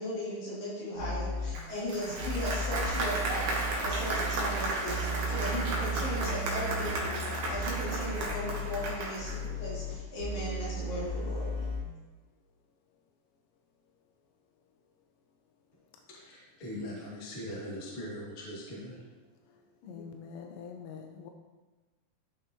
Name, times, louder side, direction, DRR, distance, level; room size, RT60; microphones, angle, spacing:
voice 1, 0.0-11.7 19.8-20.0, left 1 dB, 70° left, -8 dB, 5.1 m, -37 dB
sound 1, 1.0-1.5 2.2-11.8, right 1 dB, 80° right, 0.7 m, -35 dB
Applause, 1.5-9.4, right 2 dB, 60° right, 2.4 m, -34 dB
voice 2, 16.1-19.0, equal, 25° left, -6 dB, 1.4 m, -41 dB
voice 3, 19.9-21.3, left 6 dB, 85° left, 4 dB, 2.8 m, -44 dB
13.0 x 5.6 x 3.1 m, 1.2 s
omnidirectional pair, 4.8 m